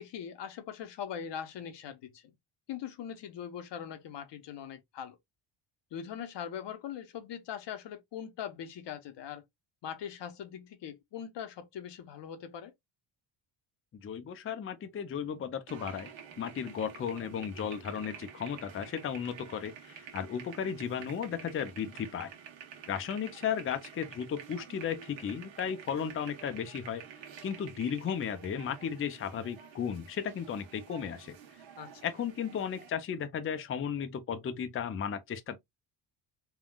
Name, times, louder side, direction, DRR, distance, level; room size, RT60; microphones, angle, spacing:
voice 1, 0.0-2.2 2.7-5.2 5.9-9.4 9.8-12.7 31.8-32.0, left 8 dB, 65° left, 0.9 m, -41 dB
voice 2, 14.0-16.1 16.4-22.3 22.9-27.0 27.4-31.3 32.0-35.6, left 7 dB, 30° left, 0.5 m, -35 dB
sound 1, 15.7-32.9, right 8 dB, 75° right, 1.2 m, -50 dB
3.6 x 2.3 x 2.3 m
cardioid pair, 105°, 46 cm